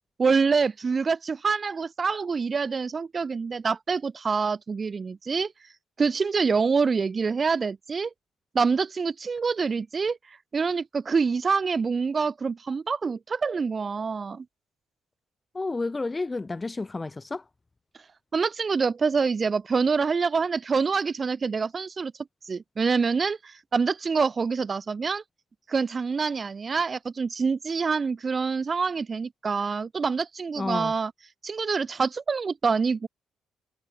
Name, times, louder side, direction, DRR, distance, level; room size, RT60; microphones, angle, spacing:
voice 1, 0.2-5.5 6.0-8.1 8.5-14.4 18.3-22.1 22.4-25.2 25.7-31.1 31.4-33.1, right 5 dB, 35° right, 1.4 m, -26 dB
voice 2, 15.5-17.4 30.6-30.9, left 3 dB, 20° left, 3.8 m, -31 dB
cardioid pair, 90°, 0 cm